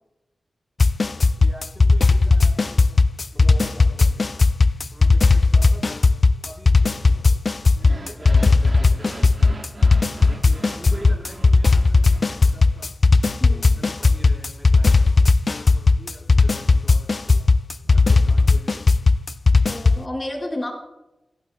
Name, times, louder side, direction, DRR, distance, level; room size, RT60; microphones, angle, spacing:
sound 1, 0.8-20.1, left 3 dB, 45° left, 0.4 m, -16 dB
voice 1, 1.4-3.0 3.3-4.4 4.9-6.0 6.4-7.4 8.1-9.5 10.3-12.9 13.4-17.5 17.8-18.9, equal, 10° right, -3 dB, 4.7 m, -44 dB
sound 2, 7.7-12.9, right 2 dB, 40° right, 1.2 m, -40 dB
voice 2, 13.4-13.8 19.6-20.7, left 1 dB, 25° left, -2 dB, 4.8 m, -31 dB
16.0 x 16.0 x 2.3 m, 0.96 s
wide cardioid pair, 85°, 0 cm